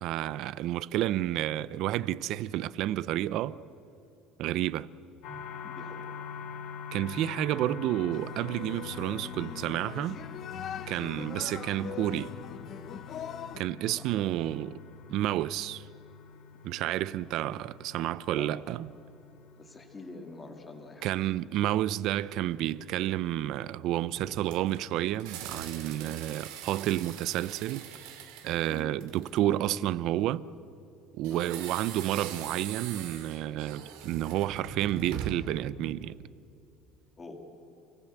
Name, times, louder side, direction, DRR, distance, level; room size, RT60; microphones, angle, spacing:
voice 1, 0.0-3.6 4.4-4.9 6.9-10.2 10.9-12.3 13.6-14.8 15.1-15.8 16.6-18.9 21.0-27.9 28.4-30.4 31.1-36.2, right 13 dB, 50° right, 0.5 m, -30 dB
sound 1, 5.2-22.9, left 6 dB, 55° left, 1.9 m, -45 dB
voice 2, 5.6-6.1 7.5-7.7 11.1-11.3 13.9-14.3 17.2-17.3 18.3-18.6 19.6-21.1 28.7-29.0 31.3-31.5 37.2-37.4, left 2 dB, 15° left, 2.2 m, -46 dB
sound 2, 8.1-13.6, left 8 dB, 35° left, 0.8 m, -41 dB
sound 3, 24.2-29.5 31.2-35.6, right 8 dB, 80° right, 2.5 m, -42 dB
29.0 x 18.0 x 8.1 m
cardioid pair, 180°, 0 cm